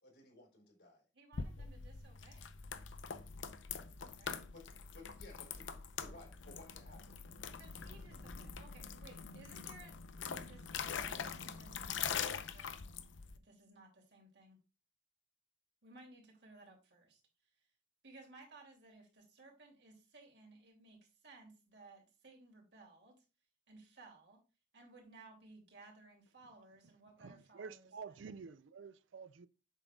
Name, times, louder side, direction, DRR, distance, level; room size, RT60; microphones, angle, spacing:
voice 1, 0.0-1.0 1.6-1.7 4.5-4.6 4.9-5.7 5.9-7.2, left 2 dB, 65° left, 3.7 m, -57 dB
voice 2, 1.1-2.5 4.1-4.4 7.6-10.0 10.2-12.7 13.4-14.6 15.8-17.2 18.0-23.2 23.7-24.4 24.7-28.2, right 2 dB, 65° right, 2.7 m, -59 dB
sound 1, 1.3-13.4, left 6 dB, 85° left, 0.7 m, -44 dB
sound 2, 7.7-12.0, equal, 50° right, 2.4 m, -64 dB
voice 3, 27.2-29.5, right 5 dB, 85° right, 0.5 m, -50 dB
8.1 x 6.2 x 2.4 m
head